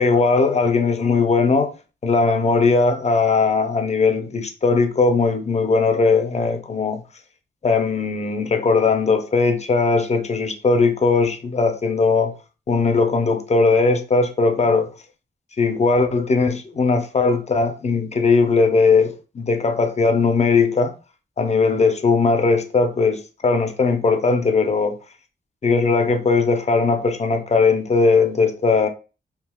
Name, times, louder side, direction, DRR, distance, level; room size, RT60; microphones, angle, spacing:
voice 1, 0.0-1.7 2.0-7.0 7.6-12.4 12.7-14.9 15.6-21.0 21.4-25.0 25.6-28.9, left 4 dB, 35° left, 0.5 m, -19 dB
3.5 x 2.7 x 2.2 m
wide cardioid pair, 105°, 20 cm